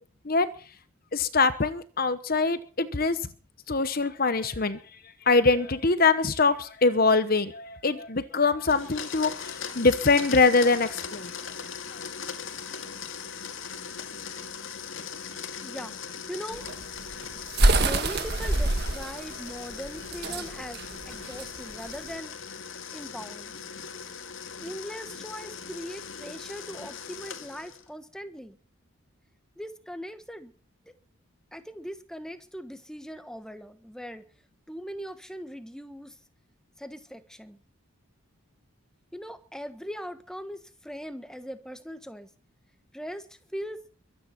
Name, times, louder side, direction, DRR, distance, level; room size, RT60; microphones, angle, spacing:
voice 1, 1.1-3.2 3.7-4.8 5.3-11.3 11.9-12.0, left 3 dB, 45° left, 1.0 m, -23 dB
Domestic sounds home sounds, 8.7-27.9, left 6 dB, 65° left, 2.0 m, -39 dB
voice 2, 15.6-15.9 16.3-16.7 17.8-22.3 22.9-23.6 24.6-28.6 29.6-30.5 31.5-34.2 34.7-36.2 36.8-37.6 39.1-42.3 42.9-43.2 43.5-43.8, equal, 5° left, 1.4 m, -40 dB
sound 1, 16.5-22.1, right 2 dB, 50° right, 1.7 m, -26 dB
23.0 x 9.5 x 6.0 m
head